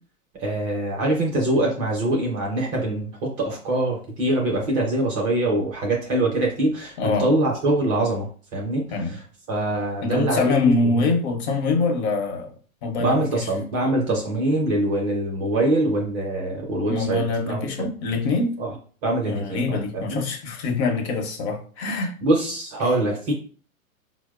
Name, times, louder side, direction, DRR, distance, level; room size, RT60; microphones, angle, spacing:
voice 1, 0.4-9.2 9.5-10.7 13.0-17.9 18.6-18.7 19.0-20.2 22.2-23.3, right 1 dB, 25° right, 0.5 m, -24 dB
voice 2, 7.0-7.3 8.9-9.2 10.0-12.5 12.8-13.5 16.9-18.6 19.3-22.1, left 3 dB, 50° left, 0.8 m, -24 dB
4.3 x 2.0 x 2.3 m
hypercardioid pair, 115°, 42 cm